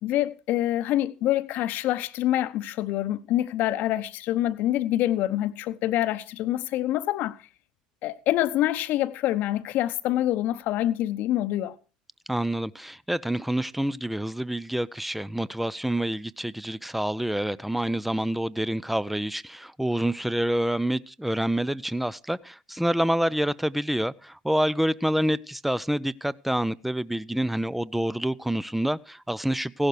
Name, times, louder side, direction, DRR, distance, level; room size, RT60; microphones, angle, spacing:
voice 1, 0.0-7.4 8.0-11.7, left 13 dB, 50° left, 1.0 m, -26 dB
voice 2, 12.3-29.9, right 1 dB, 5° right, 0.6 m, -27 dB
16.5 x 11.5 x 4.8 m
figure-of-eight pair, 65°, 4 cm